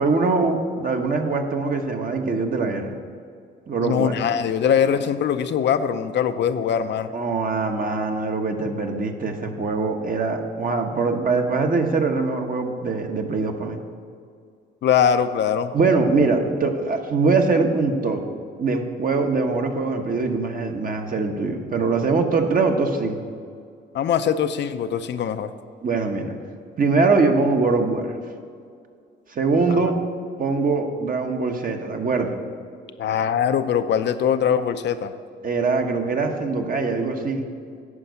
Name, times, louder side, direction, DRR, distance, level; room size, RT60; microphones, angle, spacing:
voice 1, 0.0-2.9 3.7-4.2 7.1-13.8 15.7-18.2 18.6-23.2 25.8-26.3 26.8-28.2 29.3-29.9 30.4-32.4 35.4-37.4, right 4 dB, 45° right, 4 dB, 1.2 m, -22 dB
voice 2, 3.8-7.1 14.8-15.7 23.9-25.5 29.7-29.8 33.0-35.1, left 8 dB, 60° left, 10 dB, 0.6 m, -22 dB
9.7 x 5.3 x 8.1 m, 2.3 s
cardioid pair, 90°, 20 cm